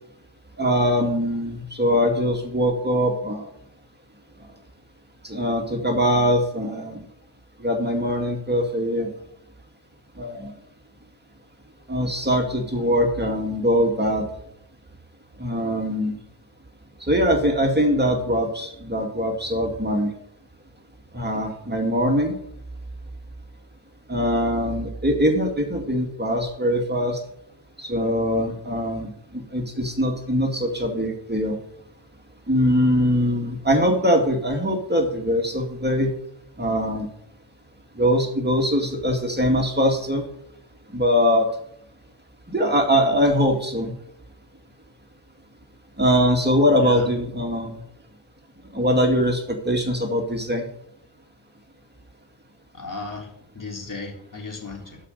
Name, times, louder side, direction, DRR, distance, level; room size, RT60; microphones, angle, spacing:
voice 1, 0.6-3.5 5.2-7.1 7.6-9.1 10.2-10.5 11.9-14.3 15.4-16.2 17.0-20.1 21.1-22.4 24.1-27.2 27.8-31.6 32.5-36.1 36.6-37.1 38.0-40.2 40.9-41.5 42.5-44.0 46.0-47.8 48.7-50.7, equal, 20° right, 2 dB, 2.3 m, -22 dB
voice 2, 52.7-53.3 53.5-55.0, left 3 dB, 45° left, 0 dB, 3.8 m, -35 dB
12.0 x 5.5 x 6.6 m, 0.74 s
cardioid pair, 50°, 45 cm